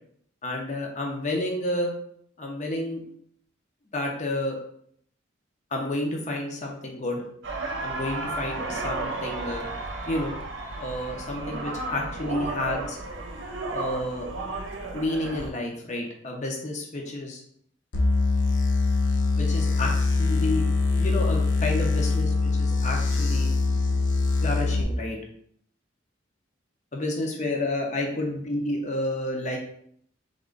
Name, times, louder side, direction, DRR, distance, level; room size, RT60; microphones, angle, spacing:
voice 1, 0.4-1.9 2.4-3.0 3.9-4.6 5.7-7.2 7.8-9.7 10.1-10.3 10.8-13.0 13.7-14.3 14.9-17.4 19.4-19.9 20.3-20.6 20.9-23.5 24.4-25.2 26.9-29.6, left 1 dB, 35° left, 1 dB, 0.8 m, -30 dB
sound 1, 7.4-15.5, right 2 dB, 70° right, 0.7 m, -33 dB
sound 2, 17.9-24.8, left 3 dB, 75° left, 0.7 m, -23 dB
3.7 x 3.0 x 3.8 m, 0.66 s
head